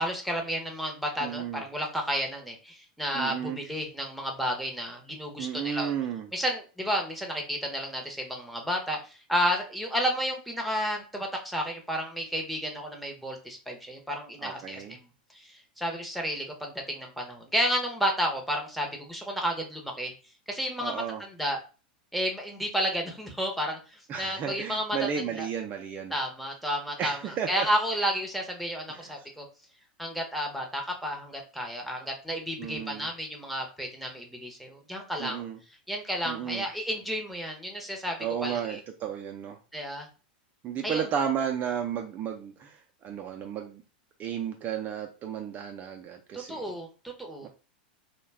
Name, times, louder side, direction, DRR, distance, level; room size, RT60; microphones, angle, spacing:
voice 1, 0.0-5.9 6.3-15.0 15.5-20.1 20.5-21.6 22.1-23.8 24.2-25.0 25.4-25.5 26.1-29.5 30.0-35.4 35.9-38.2 38.4-38.8 39.7-40.1 40.8-41.0 46.3-47.5, equal, ahead, 1 dB, 0.7 m, -31 dB
voice 2, 1.2-1.6 3.1-3.6 5.4-6.3 14.4-15.0 20.8-21.2 24.1-26.1 27.0-27.7 28.9-29.1 32.6-33.1 35.2-35.6 36.3-36.6 38.2-39.6 40.6-43.8 44.2-46.6 47.4-47.5, right 8 dB, 35° right, 3 dB, 0.4 m, -33 dB
2.3 x 2.1 x 3.3 m, 0.34 s
hypercardioid pair, 105°, 5 cm